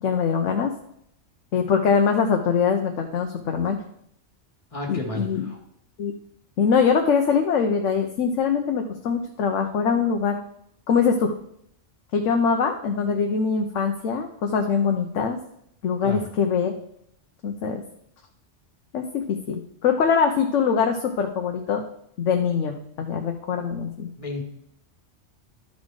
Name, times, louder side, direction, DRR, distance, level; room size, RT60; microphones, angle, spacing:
voice 1, 0.0-0.7 1.5-3.8 4.9-5.4 6.0-6.1 6.6-10.4 10.9-11.3 12.1-15.4 15.8-16.7 17.4-17.8 18.9-21.8 22.2-24.1, left 6 dB, 85° left, 4 dB, 1.1 m, -23 dB
voice 2, 4.7-5.6 16.0-16.3 24.2-24.4, left 2 dB, 30° left, 1 dB, 1.7 m, -32 dB
12.0 x 4.2 x 4.8 m, 0.72 s
omnidirectional pair, 1.2 m